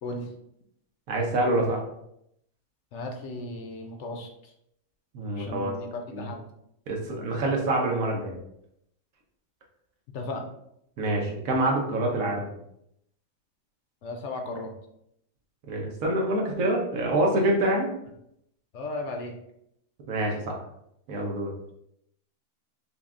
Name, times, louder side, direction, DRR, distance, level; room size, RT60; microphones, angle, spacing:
voice 1, 1.1-1.8 5.1-5.7 6.1-6.3 6.9-8.4 11.0-12.5 15.7-17.9 20.1-20.6 21.1-21.5, right 1 dB, 75° right, 0 dB, 1.2 m, -26 dB
voice 2, 2.9-4.3 5.4-6.4 10.1-10.4 14.0-14.7 18.7-19.3, left 2 dB, 65° left, 3 dB, 0.8 m, -35 dB
5.5 x 2.3 x 2.4 m, 0.76 s
omnidirectional pair, 1.4 m